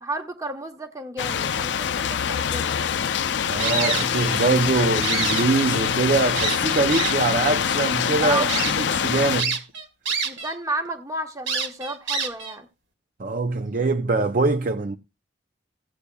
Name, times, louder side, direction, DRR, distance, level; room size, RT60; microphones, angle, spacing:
voice 1, 0.0-2.8 8.2-8.6 10.2-12.7, right 2 dB, 20° right, 1.0 m, -32 dB
sound 1, 1.2-9.4, left 8 dB, 70° left, 0.4 m, -24 dB
voice 2, 3.4-9.6 13.2-15.0, right 3 dB, 45° right, 0.5 m, -23 dB
sound 2, 3.6-4.5 4.9-5.9 6.4-7.3 7.9-8.0 8.5-8.7 9.4-10.5 10.8-10.9 11.5-12.6, right 5 dB, 90° right, 2.1 m, -27 dB
16.5 x 8.4 x 2.3 m
head